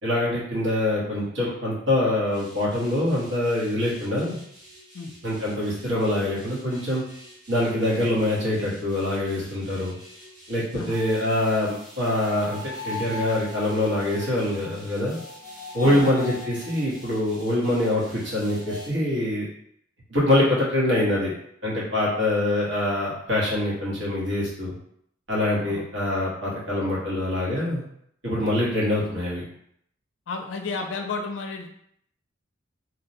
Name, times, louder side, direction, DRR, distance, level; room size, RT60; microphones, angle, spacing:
voice 1, 0.0-4.4 5.2-7.0 7.5-9.9 10.5-12.6 12.8-15.2 15.7-19.5 20.1-21.3 21.6-24.7 25.3-27.8 28.2-29.4, left 1 dB, 70° right, -6 dB, 1.1 m, -24 dB
sound 1, 2.3-18.9, left 2 dB, 20° right, 0.9 m, -42 dB
voice 2, 15.8-16.1 25.7-25.9 30.3-31.7, left 4 dB, 70° left, 4 dB, 0.4 m, -32 dB
2.7 x 2.0 x 2.6 m, 0.70 s
head